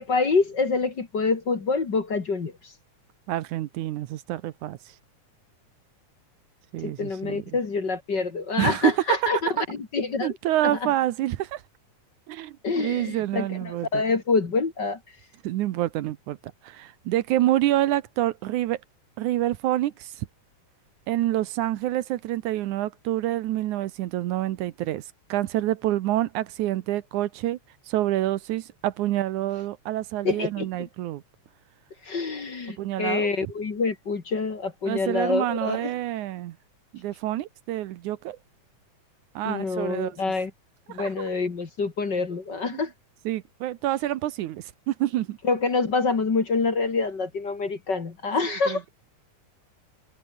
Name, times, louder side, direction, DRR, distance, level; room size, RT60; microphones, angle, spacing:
voice 1, 0.0-2.7 6.8-10.3 10.6-10.9 12.6-15.0 30.2-30.7 32.0-35.9 39.4-40.5 40.9-42.9 45.4-48.8, left 4 dB, 35° left, 2.5 m, -26 dB
voice 2, 3.3-4.8 6.7-7.4 8.6-9.3 10.2-11.6 12.3-13.9 15.4-16.4 16.6-18.8 19.2-20.3 21.1-25.0 25.3-27.6 27.9-31.2 32.8-33.3 34.9-36.6 36.9-38.4 39.4-40.3 41.0-41.1 42.7-42.8 43.3-45.4 48.5-48.9, right 14 dB, 75° right, 2.3 m, -27 dB
omnidirectional pair, 3.6 m